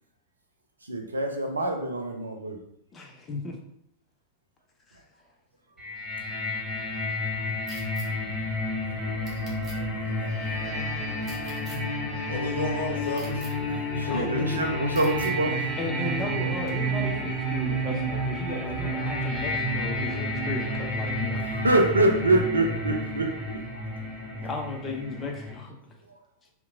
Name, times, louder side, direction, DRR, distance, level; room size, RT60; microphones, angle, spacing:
voice 1, 0.9-2.6 9.1-9.2 10.2-10.3 14.0-15.6 21.4-23.8, right 2 dB, 80° right, 3 dB, 0.4 m, -25 dB
voice 2, 2.9-3.6 4.9-5.0 14.1-14.6 15.8-21.4 24.4-25.7, left 3 dB, 25° left, 1 dB, 0.5 m, -35 dB
sound 1, 5.8-25.5, equal, ahead, 1.0 m, -30 dB
sound 2, 7.7-8.1 9.3-9.8 11.2-11.8 13.1-13.5 14.9-15.3, right 2 dB, 25° right, 0.7 m, -45 dB
voice 3, 12.3-13.7 14.0-14.5 17.2-17.3 17.6-18.0, left 2 dB, 70° left, -2 dB, 0.7 m, -34 dB
2.8 x 2.1 x 2.5 m, 0.73 s
figure-of-eight pair, 90°, 0 cm